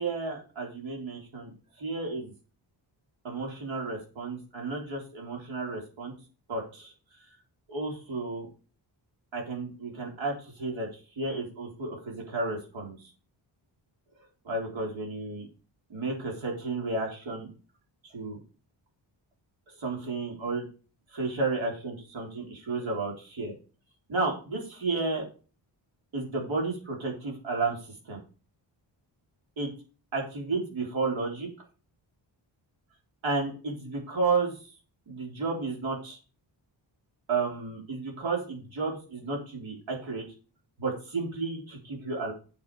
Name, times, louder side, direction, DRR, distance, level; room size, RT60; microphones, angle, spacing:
voice 1, 0.0-1.5 1.8-2.3 3.2-6.1 6.5-6.9 7.7-8.5 9.3-10.9 11.2-13.1 14.4-15.5 15.9-17.5 18.0-18.4 19.7-20.7 21.1-23.5 24.1-25.3 26.1-28.2 29.6-29.7 30.1-31.5 33.2-34.7 35.1-36.2 37.3-40.3 40.8-42.3, right 3 dB, 80° right, 0 dB, 4.0 m, -32 dB
8.8 x 8.5 x 4.9 m, 0.35 s
wide cardioid pair, 145°, 46 cm